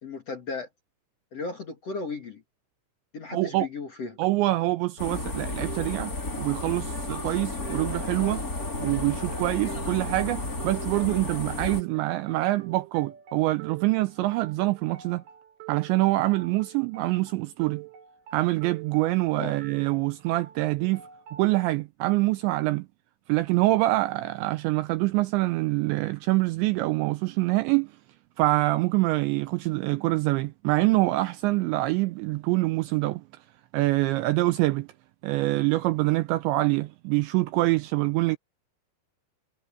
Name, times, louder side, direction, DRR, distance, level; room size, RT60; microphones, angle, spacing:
voice 1, 0.0-0.7 1.3-2.4 3.1-4.2 19.3-19.6, left 4 dB, 45° left, 2.2 m, -35 dB
voice 2, 3.3-3.7 4.2-6.1 6.4-8.4 8.8-15.2 15.7-17.8 18.3-21.0 21.3-22.9 23.3-27.9 28.4-33.2 33.7-34.9 35.2-38.4, right 19 dB, 80° right, 2.7 m, -25 dB
sound 1, 5.0-11.8, left 2 dB, 20° left, 3.9 m, -33 dB
sound 2, 5.6-21.6, right 10 dB, 55° right, 6.2 m, -46 dB
omnidirectional pair, 5.7 m